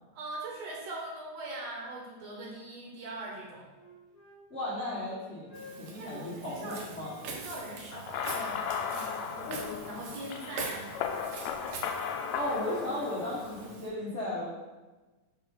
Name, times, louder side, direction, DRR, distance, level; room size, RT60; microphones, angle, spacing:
voice 1, 0.1-3.7 6.0-6.8 7.1-11.2, right 2 dB, 65° right, -2 dB, 1.9 m, -42 dB
Wind instrument woodwind instrument, 3.7-7.2 7.6-9.7 9.9-10.1 10.4-10.7 11.0-11.2, left 3 dB, 15° left, 1.5 m, -53 dB
voice 2, 4.5-7.1 12.3-14.4, left 1 dB, 60° left, -9 dB, 0.7 m, -35 dB
Walk footsteps, 5.6-13.9, right 4 dB, 85° right, 1.2 m, -44 dB
sound 1, 7.9-13.7, left 7 dB, 90° left, 1.6 m, -36 dB
4.8 x 4.7 x 5.5 m, 1.2 s
omnidirectional pair, 3.7 m